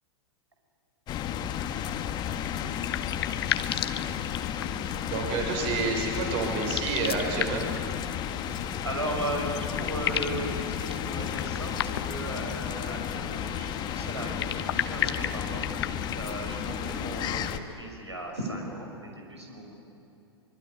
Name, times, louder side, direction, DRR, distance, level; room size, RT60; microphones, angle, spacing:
sound 1, 1.1-17.6, left 9 dB, 30° left, 1.5 m, -33 dB
sound 2, 2.4-4.9 6.5-7.8 9.2-9.3 9.5-10.5 11.3-12.3 14.2-16.4, left 10 dB, 65° left, 1.2 m, -33 dB
voice 1, 5.1-7.6, right 4 dB, 45° right, 3 dB, 5.5 m, -29 dB
voice 2, 8.5-15.7 16.1-19.7, right 1 dB, 90° right, 1 dB, 5.9 m, -36 dB
25.0 x 22.5 x 9.7 m, 2.8 s
figure-of-eight pair, 100°, 14 cm